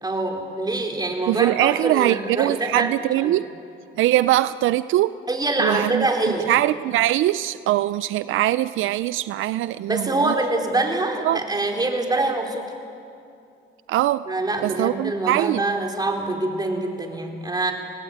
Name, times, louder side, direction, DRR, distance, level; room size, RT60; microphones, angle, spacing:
voice 1, 0.0-2.9 3.2-3.3 5.3-6.5 9.9-12.7 14.3-17.7, right 2 dB, 20° right, 1 dB, 4.0 m, -25 dB
voice 2, 1.3-3.5 3.9-5.2 5.6-6.1 6.5-10.4 11.2-11.4 13.9-14.2 14.6-15.7, right 14 dB, 85° right, 15 dB, 0.5 m, -22 dB
29.0 x 18.5 x 8.7 m, 2.6 s
cardioid pair, 90°, 20 cm